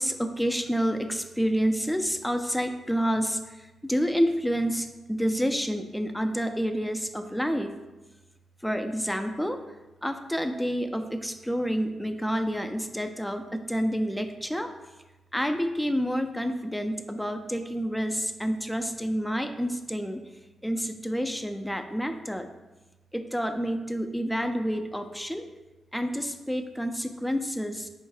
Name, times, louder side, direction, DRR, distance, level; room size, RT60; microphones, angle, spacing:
voice 1, 0.0-7.7 8.6-9.6 10.0-14.7 15.3-20.2 20.6-22.5 23.1-25.4 25.9-27.9, equal, 5° left, 6 dB, 0.4 m, -29 dB
4.5 x 2.2 x 4.7 m, 1.1 s
cardioid pair, 65°, 0 cm